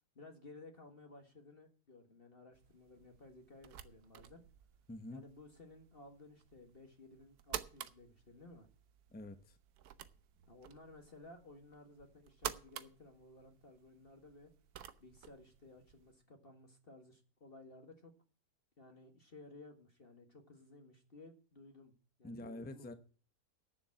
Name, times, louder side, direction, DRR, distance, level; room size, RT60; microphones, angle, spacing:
voice 1, 0.2-4.4 5.1-8.7 10.5-14.5 15.0-18.1 18.8-21.9 22.2-22.9, left 2 dB, 40° left, 1.8 m, -57 dB
sound 1, 2.5-16.1, right 10 dB, 85° right, 1.3 m, -51 dB
voice 2, 4.9-5.2 9.1-9.5 22.2-22.9, left 1 dB, 10° left, 0.7 m, -46 dB
9.4 x 7.1 x 8.7 m
omnidirectional pair, 1.6 m